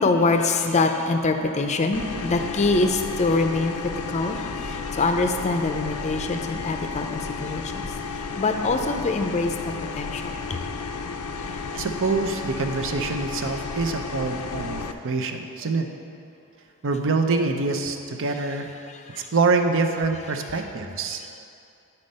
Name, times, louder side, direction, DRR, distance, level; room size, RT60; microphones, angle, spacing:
voice 1, 0.0-10.7 11.4-11.7 14.9-15.0 18.9-19.3 21.2-21.4, left 3 dB, 30° left, 6 dB, 0.5 m, -25 dB
sound 1, 1.9-14.9, left 4 dB, 85° left, 0.5 m, -33 dB
voice 2, 11.7-15.9 16.8-18.7 19.1-21.2, right 3 dB, 60° right, 5 dB, 0.6 m, -25 dB
10.5 x 4.2 x 5.3 m, 2.5 s
head